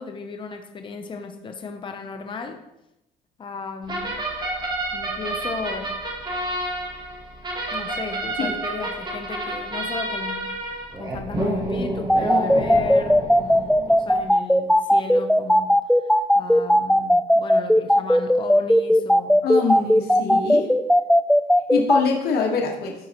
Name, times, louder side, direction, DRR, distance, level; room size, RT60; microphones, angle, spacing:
voice 1, 0.0-2.6 3.4-4.2 4.9-6.0 7.7-15.8 16.3-19.5, left 4 dB, 30° left, 0.8 m, -35 dB
sound 1, 3.9-14.2, right 1 dB, 25° right, 2.1 m, -29 dB
sound 2, 12.1-22.0, equal, ahead, 0.3 m, -16 dB
voice 2, 19.4-20.7 21.7-22.9, left 5 dB, 70° left, 1.6 m, -24 dB
12.0 x 5.4 x 3.0 m
cardioid pair, 110°, 17 cm